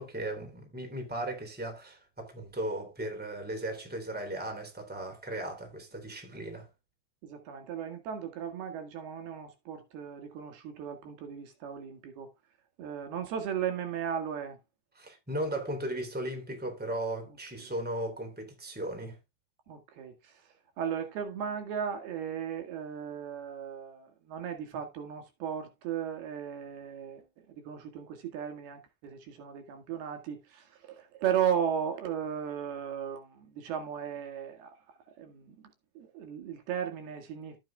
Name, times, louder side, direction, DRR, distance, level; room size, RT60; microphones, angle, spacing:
voice 1, 0.0-6.7 15.0-19.2, right 1 dB, 5° right, 2.7 m, -36 dB
voice 2, 7.2-12.3 12.8-14.6 17.6-17.7 19.7-37.6, right 8 dB, 80° right, 4.0 m, -36 dB
12.5 x 9.0 x 2.3 m
omnidirectional pair, 4.4 m